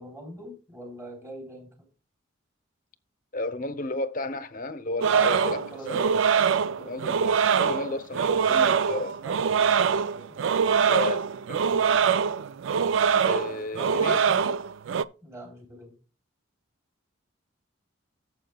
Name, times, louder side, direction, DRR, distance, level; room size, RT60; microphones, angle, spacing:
voice 1, 0.0-1.7 5.1-6.1 6.4-7.1 9.1-10.4 13.8-14.5 15.2-16.0, right 1 dB, 15° right, 3.2 m, -42 dB
voice 2, 3.3-6.2 6.8-9.2 10.8-11.6 13.2-14.2, left 2 dB, 45° left, 0.8 m, -33 dB
sound 1, 5.0-15.0, right 6 dB, 70° right, 0.4 m, -23 dB
14.0 x 7.6 x 2.3 m
head